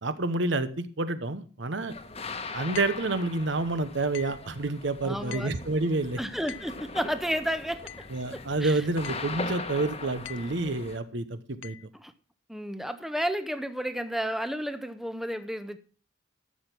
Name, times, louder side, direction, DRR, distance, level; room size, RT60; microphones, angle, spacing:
voice 1, 0.0-1.9 2.5-6.2 8.1-11.8, right 2 dB, 65° right, 12 dB, 1.0 m, -29 dB
sound 1, 1.9-11.0, left 3 dB, 30° left, 1.1 m, -40 dB
sound 2, 2.7-3.1 4.1-4.5 5.3-5.7 6.5-6.8 7.9-8.2 9.0-9.4 10.2-10.6 11.6-11.9, left 11 dB, 70° left, 0.6 m, -43 dB
voice 2, 5.0-5.5 6.2-7.8 8.3-8.8 12.0-12.1 12.5-15.8, equal, ahead, 10 dB, 0.7 m, -32 dB
12.5 x 7.1 x 6.0 m, 0.38 s
head